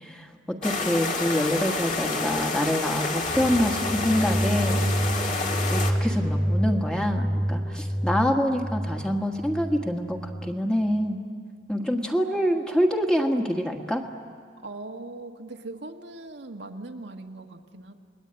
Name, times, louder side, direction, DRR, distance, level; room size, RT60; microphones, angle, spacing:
voice 1, 0.0-4.9 5.7-11.2 11.7-14.0, equal, 5° left, 3 dB, 1.6 m, -26 dB
sound 1, 0.6-5.9, left 3 dB, 45° left, 2.1 m, -29 dB
sound 2, 3.3-10.5, equal, 20° left, 2.3 m, -28 dB
voice 2, 3.4-5.5 7.6-7.8 11.9-12.3 14.6-18.0, right 2 dB, 75° right, 3 dB, 1.5 m, -41 dB
30.0 x 21.0 x 9.0 m, 2.2 s
head